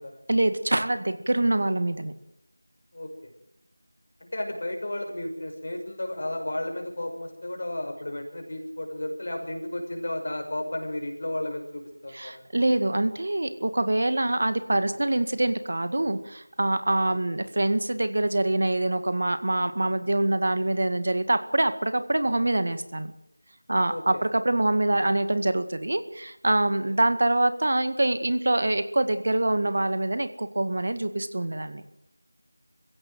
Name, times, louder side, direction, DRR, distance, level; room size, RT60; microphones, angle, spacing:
voice 1, 0.3-2.1 12.1-23.1 23.7-31.8, right 1 dB, 55° right, 11 dB, 1.9 m, -25 dB
voice 2, 2.9-3.3 4.2-12.5 17.1-17.2 17.4-17.5 23.9-24.2 26.8-26.9, left 1 dB, 50° left, 4 dB, 5.8 m, -33 dB
26.5 x 16.5 x 7.8 m, 0.82 s
figure-of-eight pair, 175°, 0 cm